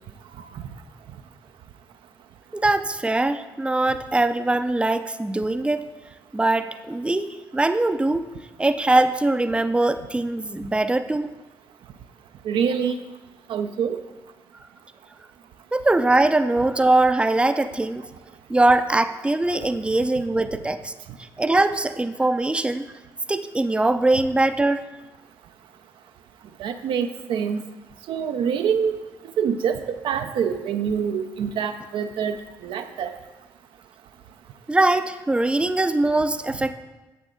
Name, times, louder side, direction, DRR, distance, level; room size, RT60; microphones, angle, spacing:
voice 1, 2.5-5.9 6.3-8.3 8.6-11.3 15.7-18.0 18.5-20.9 21.4-22.8 23.3-24.8 34.7-36.7, right 2 dB, 10° right, 9 dB, 0.5 m, -21 dB
voice 2, 12.4-13.0 13.5-14.0 26.6-27.6 28.1-28.9 29.4-32.4 32.6-33.2, right 7 dB, 65° right, 7 dB, 0.5 m, -25 dB
9.2 x 7.5 x 3.8 m, 1.1 s
hypercardioid pair, 40°, 9 cm